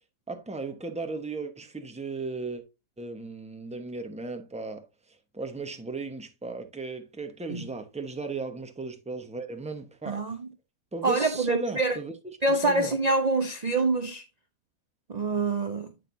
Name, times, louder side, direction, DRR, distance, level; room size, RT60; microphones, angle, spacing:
voice 1, 0.3-2.6 3.0-10.3 10.9-13.0, right 3 dB, 5° right, 0.6 m, -36 dB
voice 2, 10.1-10.5 11.0-12.0 12.4-14.2 15.1-15.9, right 2 dB, 55° right, 0.4 m, -26 dB
8.6 x 6.6 x 2.6 m
omnidirectional pair, 1.7 m